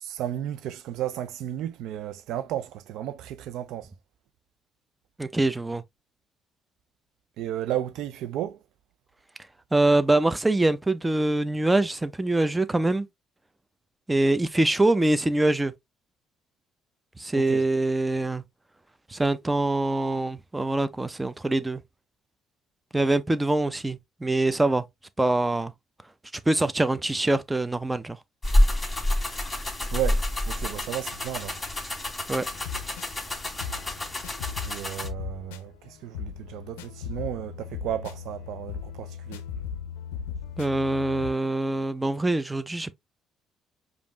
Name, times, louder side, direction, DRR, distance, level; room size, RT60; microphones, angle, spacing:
voice 1, 0.0-3.9 7.4-8.6 17.3-17.7 29.9-31.6 34.7-39.4, right 12 dB, 70° right, 0.4 m, -33 dB
voice 2, 5.2-5.8 9.7-13.1 14.1-15.7 17.2-18.4 19.1-21.8 22.9-24.8 25.2-25.7 26.3-28.2 32.3-32.4 40.6-42.9, right 2 dB, 15° right, 0.6 m, -24 dB
sound 1, 28.4-35.1, left 1 dB, 15° left, 1.9 m, -27 dB
sound 2, 32.3-41.3, left 7 dB, 90° left, 0.4 m, -38 dB
5.1 x 2.6 x 2.9 m
hypercardioid pair, 60°, 0 cm